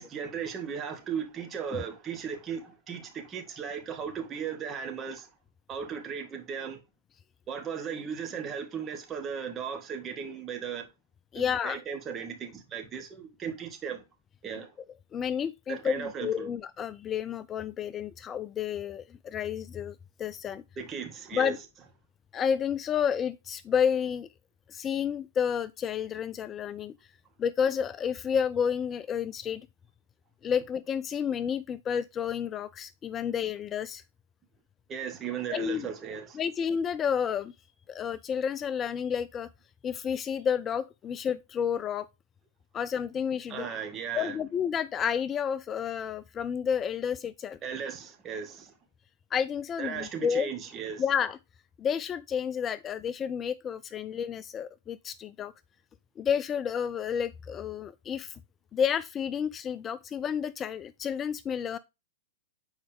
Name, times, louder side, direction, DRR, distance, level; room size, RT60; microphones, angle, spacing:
voice 1, 0.0-5.3 5.7-6.8 7.5-10.9 11.3-14.0 14.4-14.7 15.7-16.5 20.8-21.6 34.9-36.4 43.5-44.4 47.6-48.8 49.8-51.0, right 7 dB, 25° right, 1.8 m, -36 dB
voice 2, 11.3-11.8 15.1-20.6 21.3-21.6 22.3-24.3 24.7-26.9 27.4-29.6 30.4-34.0 35.5-35.9 36.4-37.5 37.9-39.5 39.8-42.1 42.7-43.7 44.1-47.6 49.3-50.5 51.0-51.4 51.8-55.5 56.2-58.3 58.7-61.8, left 7 dB, 25° left, 0.3 m, -30 dB
7.1 x 4.7 x 3.5 m
hypercardioid pair, 110°, 0 cm